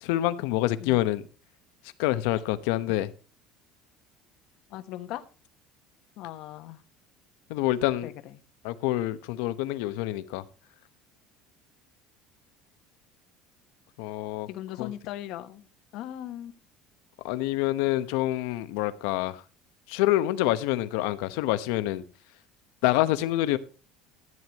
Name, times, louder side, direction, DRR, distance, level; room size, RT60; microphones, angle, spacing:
voice 1, 0.0-1.2 2.0-3.1 7.5-8.1 8.6-10.4 14.0-14.5 14.8-14.9 17.2-19.4 19.9-22.0 22.8-23.6, left 15 dB, 80° left, 1.0 m, -26 dB
voice 2, 4.7-5.2 6.2-6.8 8.0-8.1 14.5-15.6 15.9-16.5, left 13 dB, 50° left, 1.1 m, -38 dB
14.0 x 9.4 x 3.0 m
cardioid pair, 180°, 0 cm